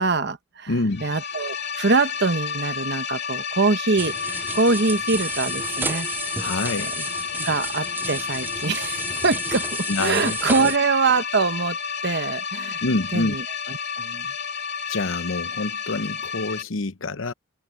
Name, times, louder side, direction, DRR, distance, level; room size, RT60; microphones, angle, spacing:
voice 1, 0.0-0.7 1.0-6.3 7.0-7.1 7.4-12.8 13.1-14.3, right 4 dB, 55° right, 1.1 m, -24 dB
voice 2, 0.7-1.1 6.4-7.1 9.9-10.7 12.8-13.4 14.9-17.3, left 2 dB, 75° left, 0.9 m, -27 dB
sound 1, 0.9-16.6, left 6 dB, 55° left, 2.1 m, -31 dB
sound 2, 4.0-10.8, right 3 dB, 10° right, 0.3 m, -33 dB
head